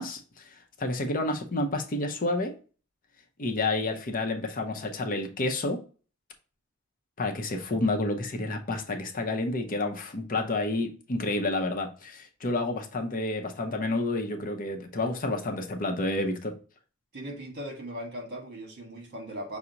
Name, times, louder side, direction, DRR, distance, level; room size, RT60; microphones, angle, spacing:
voice 1, 0.0-2.5 3.4-5.8 7.2-16.5, left 2 dB, 45° left, 0.6 m, -30 dB
voice 2, 17.1-19.6, equal, 50° right, 1.3 m, -38 dB
5.8 x 2.0 x 3.8 m
head